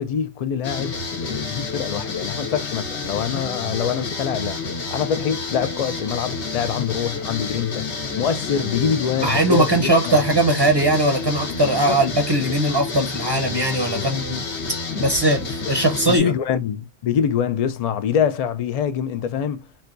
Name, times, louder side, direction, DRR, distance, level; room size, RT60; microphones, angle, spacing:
voice 1, 0.0-4.6 4.9-7.9 8.2-10.2 11.7-12.0 13.5-13.6 13.9-14.1 16.0-19.7, left 8 dB, 60° left, 0.4 m, -25 dB
sound 1, 0.6-16.2, left 4 dB, 80° left, 1.2 m, -29 dB
voice 2, 9.2-14.4 15.0-16.3, right 1 dB, 30° right, 0.6 m, -20 dB
4.2 x 2.2 x 2.4 m
omnidirectional pair, 1.1 m